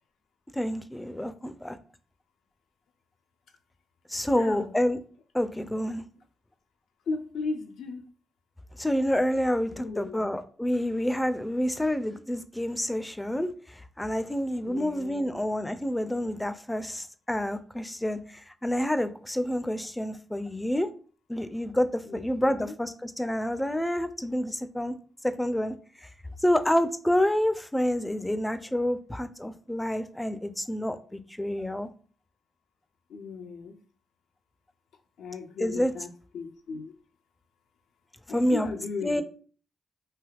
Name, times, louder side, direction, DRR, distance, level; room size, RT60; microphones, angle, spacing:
voice 1, 0.5-1.8 4.1-5.0 5.3-6.0 8.8-20.9 21.3-24.9 25.2-25.7 26.0-26.1 26.4-31.9 35.6-35.9 38.3-38.7 39.0-39.2, left 1 dB, 10° left, 0.4 m, -28 dB
voice 2, 4.3-4.8 7.1-8.0 9.7-10.3 14.6-15.4 22.1-22.7 33.1-33.7 35.2-36.1 36.3-36.9 38.3-39.2, left 4 dB, 80° left, 0.4 m, -36 dB
3.3 x 2.7 x 2.3 m
supercardioid pair, 55°, 0 cm